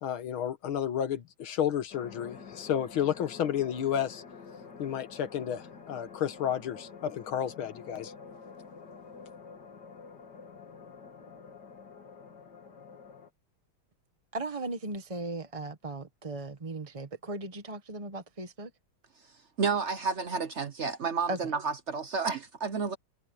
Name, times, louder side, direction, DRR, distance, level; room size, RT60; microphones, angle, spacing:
voice 1, 0.0-4.2 4.8-8.1, left 9 dB, 80° left, 2.3 m, -31 dB
sound 1, 1.9-13.3, left 5 dB, 55° left, 2.7 m, -48 dB
voice 2, 14.3-18.7 21.3-21.4, right 2 dB, 25° right, 0.9 m, -37 dB
voice 3, 19.6-23.0, right 5 dB, 55° right, 0.8 m, -31 dB
omnidirectional pair, 2.2 m